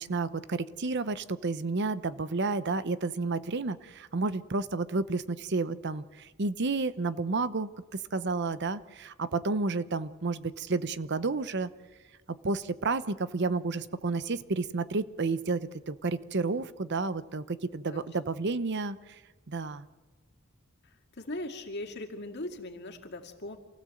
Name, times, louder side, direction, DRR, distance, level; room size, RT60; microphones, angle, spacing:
voice 1, 0.0-7.7 8.1-11.7 12.4-15.6 15.9-19.0 19.5-19.9, right 3 dB, 55° right, 14 dB, 0.8 m, -31 dB
voice 2, 21.2-23.6, left 1 dB, 55° left, 4 dB, 2.3 m, -39 dB
28.0 x 16.0 x 7.8 m, 1.3 s
head